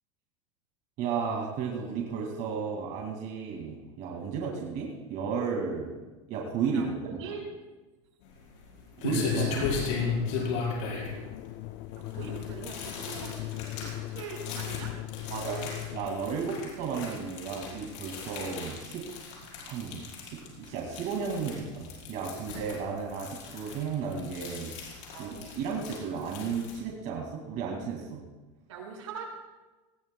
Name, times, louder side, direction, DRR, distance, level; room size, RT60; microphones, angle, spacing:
voice 1, 1.0-5.9 6.3-6.9 9.0-9.7 15.3-15.6 15.9-19.0 19.6-28.2, right 5 dB, 55° right, -1 dB, 2.2 m, -33 dB
voice 2, 6.7-7.4 10.8-11.1 12.0-14.9 15.5-15.7 25.1-25.4 28.7-29.2, right 6 dB, 90° right, -1 dB, 5.2 m, -42 dB
sound 1, 8.2-26.8, left 5 dB, 70° left, 5.0 m, -37 dB
sound 2, 9.3-16.1, left 17 dB, 50° left, 0.4 m, -38 dB
19.0 x 16.5 x 2.2 m, 1.2 s
supercardioid pair, 125°, 16 cm